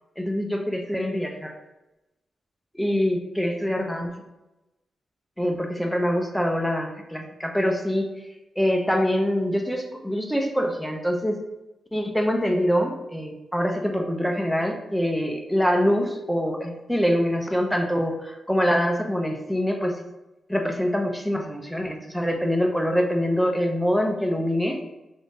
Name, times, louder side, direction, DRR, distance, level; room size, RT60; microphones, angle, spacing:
voice 1, 0.2-1.5 2.8-4.1 5.4-8.1 8.6-11.4 11.9-20.0 20.5-24.8, equal, 5° left, 2 dB, 0.6 m, -24 dB
3.3 x 2.6 x 3.9 m, 0.97 s
supercardioid pair, 50°, 0 cm